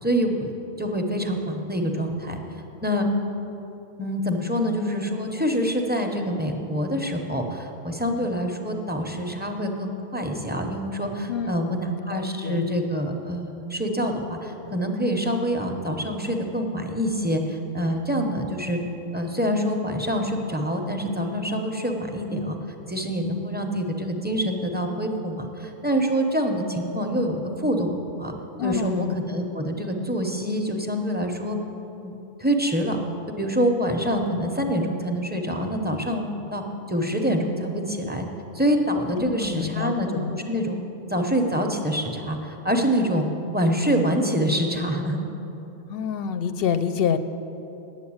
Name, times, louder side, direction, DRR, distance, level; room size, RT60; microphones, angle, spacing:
voice 1, 0.0-0.5 0.8-2.4 2.8-3.1 4.0-18.8 19.1-22.6 22.9-28.3 28.6-31.6 32.0-33.0 33.3-36.2 36.5-36.6 36.9-38.3 38.5-40.8 41.1-43.3 43.5-45.2, equal, 10° right, 3 dB, 0.7 m, -26 dB
voice 2, 11.3-12.7 28.6-29.2 39.1-40.4 45.9-47.2, left 7 dB, 65° left, 10 dB, 0.7 m, -28 dB
9.1 x 7.4 x 8.7 m, 3.0 s
omnidirectional pair, 1.2 m